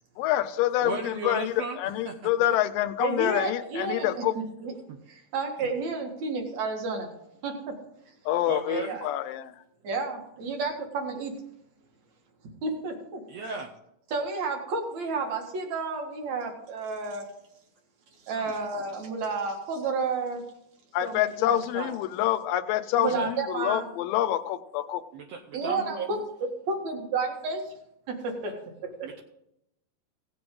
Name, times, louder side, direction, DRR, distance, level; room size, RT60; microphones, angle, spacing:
voice 1, 0.2-4.4 8.3-9.5 20.9-25.0, left 12 dB, 85° left, 11 dB, 2.3 m, -27 dB
voice 2, 0.8-2.3 4.9-5.0 8.5-9.0 13.3-13.7 18.3-18.6 23.1-23.3 25.1-26.1 29.0-29.2, right 4 dB, 80° right, 4 dB, 1.5 m, -35 dB
voice 3, 3.0-4.7 5.1-7.1 7.4-7.8 8.8-9.1 9.8-11.3 12.6-13.2 14.1-17.3 18.2-20.4 21.0-21.3 21.7-21.9 23.0-23.9 25.5-26.2 26.7-27.7 28.1-28.6 28.8-29.1, right 4 dB, 55° right, 3 dB, 2.7 m, -31 dB
17.0 x 7.8 x 3.8 m, 0.80 s
omnidirectional pair, 4.0 m